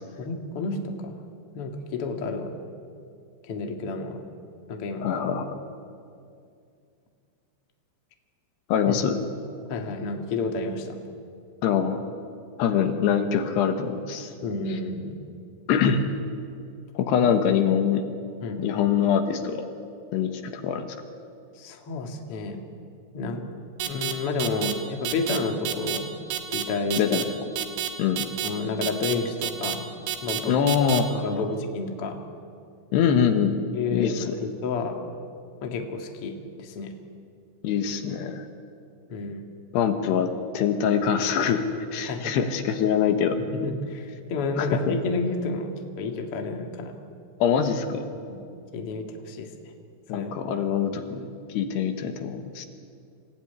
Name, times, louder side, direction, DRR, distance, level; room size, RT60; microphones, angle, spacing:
voice 1, 0.2-1.2 1.5-2.5 3.4-4.2 4.7-5.1 8.9-9.0 9.7-11.0 14.4-15.2 18.4-18.6 21.6-22.6 23.1-23.4 23.8-26.1 26.5-27.2 28.4-29.8 30.2-30.6 31.2-32.2 33.7-35.0 35.6-36.9 39.1-39.4 42.0-42.5 43.6-46.9 48.3-48.4 48.7-49.5 50.1-50.4, left 3 dB, 45° left, 3 dB, 2.1 m, -30 dB
voice 2, 5.0-5.5 8.7-9.2 11.6-12.0 12.6-14.3 14.7-14.8 15.7-16.0 16.9-18.0 18.6-19.7 20.1-21.0 27.0-27.3 28.0-28.3 30.5-31.5 32.9-33.6 33.9-34.4 37.6-38.5 39.7-41.6 41.9-43.4 44.6-45.0 47.4-48.0 50.1-51.3 51.5-52.7, left 7 dB, 75° left, 7 dB, 3.3 m, -24 dB
sound 1, 23.8-24.1 24.4-24.7 25.1-25.4 25.7-26.0 26.3-26.6 26.9-27.2 27.6-27.9 28.2-28.5 28.8-29.1 29.4-29.8 30.1-30.4 30.7-31.0, right 11 dB, 85° right, 3.6 m, -28 dB
26.5 x 15.5 x 9.5 m, 2.4 s
omnidirectional pair, 4.9 m